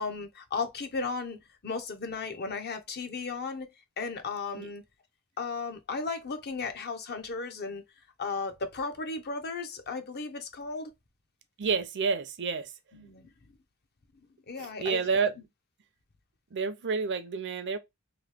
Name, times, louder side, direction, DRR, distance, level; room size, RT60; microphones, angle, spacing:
voice 1, 0.0-3.7 4.0-4.8 5.4-7.8 8.2-10.9 12.9-13.3 14.5-15.0, left 4 dB, 45° left, 0.7 m, -35 dB
voice 2, 11.6-12.7 14.6-15.4 16.5-17.8, right 5 dB, 55° right, 0.5 m, -29 dB
3.0 x 2.7 x 3.3 m
head